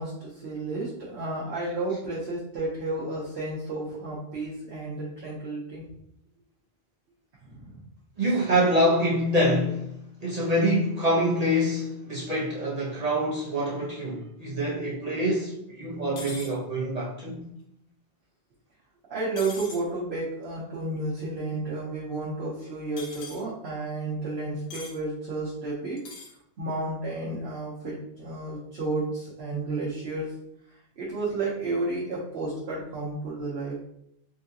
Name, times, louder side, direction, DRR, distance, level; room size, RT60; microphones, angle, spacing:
voice 1, 0.0-5.8 7.4-7.8 19.1-26.0 26.6-30.3 30.7-33.8, right 2 dB, 85° right, 1.1 m, -32 dB
voice 2, 8.2-17.4, equal, 40° right, 0.8 m, -26 dB
sound 1, 16.2-16.5 19.4-19.8 23.0-23.4 24.7-25.0 26.0-26.3, left 3 dB, 80° left, 0.8 m, -41 dB
3.7 x 2.3 x 2.7 m
omnidirectional pair, 1.0 m